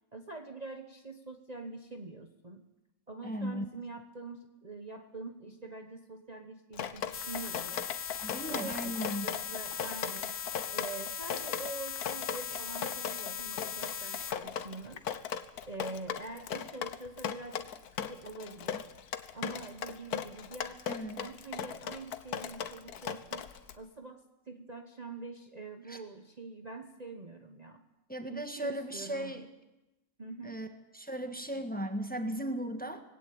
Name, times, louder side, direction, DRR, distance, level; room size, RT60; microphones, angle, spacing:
voice 1, 0.1-2.7 3.1-7.9 8.5-10.4 10.7-15.0 15.7-17.7 18.1-27.8 28.3-29.5 30.2-30.6, right 3 dB, 30° right, 5 dB, 1.2 m, -45 dB
voice 2, 3.2-3.6 8.2-9.2 20.9-21.2 25.9-26.0 28.1-29.4 30.4-30.7 30.9-33.0, equal, 5° left, 6 dB, 1.5 m, -36 dB
Drip, 6.7-23.7, left 8 dB, 85° left, 1.5 m, -38 dB
sound 1, 7.1-14.3, left 8 dB, 60° left, 1.5 m, -39 dB
20.0 x 17.0 x 8.7 m, 0.98 s
omnidirectional pair, 1.6 m